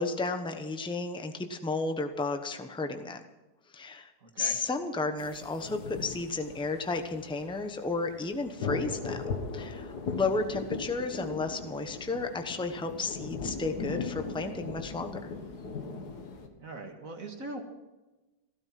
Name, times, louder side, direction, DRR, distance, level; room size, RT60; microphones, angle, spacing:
voice 1, 0.0-3.2 3.7-4.1 4.4-15.3, left 3 dB, 5° left, 6 dB, 0.7 m, -33 dB
voice 2, 4.2-4.6 16.6-17.6, right 2 dB, 50° right, 3 dB, 2.2 m, -41 dB
sound 1, 5.2-16.5, left 4 dB, 60° left, 2.1 m, -38 dB
15.5 x 13.0 x 5.9 m, 1.1 s
omnidirectional pair, 1.9 m